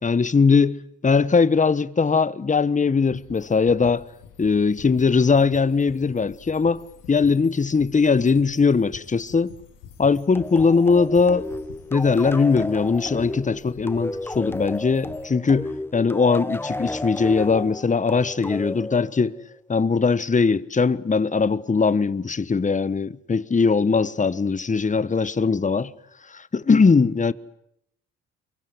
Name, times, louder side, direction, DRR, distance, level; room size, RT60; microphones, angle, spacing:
voice 1, 0.0-4.0 4.4-6.8 7.1-9.5 10.0-11.5 11.9-19.3 19.7-25.9 26.3-27.3, left 4 dB, 25° left, 1.2 m, -20 dB
sound 1, 3.0-15.3, left 8 dB, 85° left, 3.3 m, -47 dB
sound 2, 10.3-19.6, left 1 dB, 5° left, 1.2 m, -33 dB
24.0 x 22.5 x 9.6 m
supercardioid pair, 55°, 31 cm